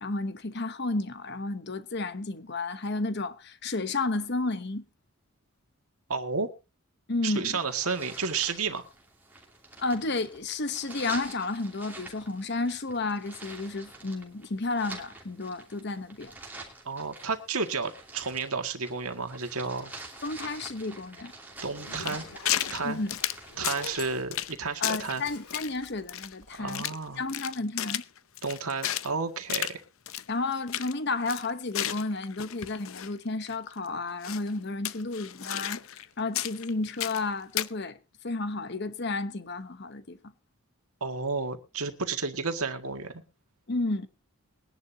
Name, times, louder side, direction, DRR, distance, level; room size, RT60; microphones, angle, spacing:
voice 1, 0.0-4.8 7.1-7.6 9.8-16.3 20.2-21.3 22.8-23.1 24.8-26.9 27.2-28.0 30.3-38.0 38.2-40.2 43.7-44.1, left 3 dB, 50° left, 1.0 m, -32 dB
voice 2, 6.1-6.5 7.2-8.8 16.9-19.9 21.6-22.2 22.7-23.0 23.6-25.2 26.6-27.2 28.4-29.8 41.0-43.2, right 4 dB, 80° right, 1.9 m, -32 dB
sound 1, 7.4-23.9, right 2 dB, 10° right, 2.9 m, -47 dB
Zipper (clothing), 21.6-26.8, left 3 dB, 85° left, 2.5 m, -46 dB
sound 2, 22.0-22.8 23.1-24.0 24.3-24.6 24.8-25.2 25.5-27.0 27.3-29.1 29.5-29.7 30.1-30.2 30.5-30.9 31.3-33.1 33.5-33.6 34.2-34.5 34.8-36.1 36.3-37.2 37.6-37.7, left 12 dB, 70° left, 0.6 m, -33 dB
21.5 x 11.0 x 2.8 m
head